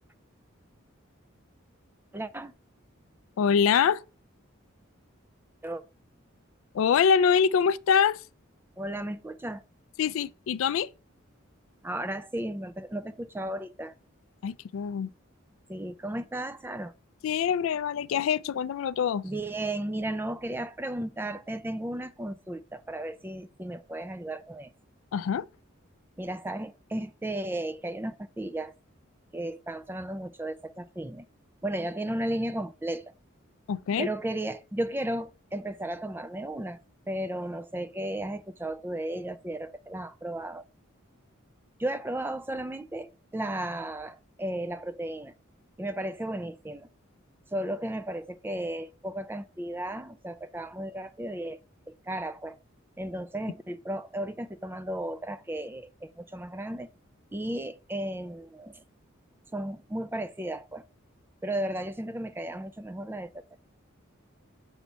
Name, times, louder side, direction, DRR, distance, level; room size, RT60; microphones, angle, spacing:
voice 1, 2.1-2.5 5.6-5.8 8.8-9.6 11.8-13.9 15.7-16.9 19.2-24.7 26.2-28.7 29.3-31.3 31.6-33.0 34.0-36.8 37.1-40.6 41.8-45.3 45.8-46.9 47.5-51.6 51.9-52.6 53.0-56.9 57.3-58.8 59.5-60.9 61.4-63.6, right 1 dB, 10° right, 0.3 m, -34 dB
voice 2, 3.4-4.0 6.7-8.2 10.0-10.9 14.4-15.1 17.2-19.2 25.1-25.4 33.7-34.1, left 7 dB, 75° left, 0.3 m, -24 dB
7.1 x 4.1 x 4.4 m
head